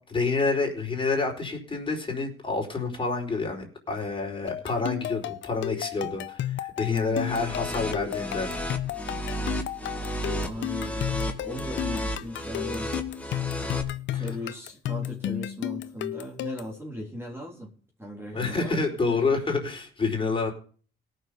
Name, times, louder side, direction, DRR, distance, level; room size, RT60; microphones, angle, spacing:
voice 1, 0.1-8.5 14.1-14.3 18.3-20.5, left 4 dB, 25° left, 1 dB, 4.5 m, -28 dB
sound 1, 4.5-16.8, left 13 dB, 70° left, 0.7 m, -33 dB
voice 2, 6.8-7.3 10.4-12.9 14.1-17.7 18.0-19.3, equal, 10° right, -1 dB, 3.4 m, -37 dB
sound 2, 7.2-13.8, equal, 5° left, 2.1 m, -33 dB
17.5 x 6.5 x 5.2 m, 0.40 s
cardioid pair, 90°, 20 cm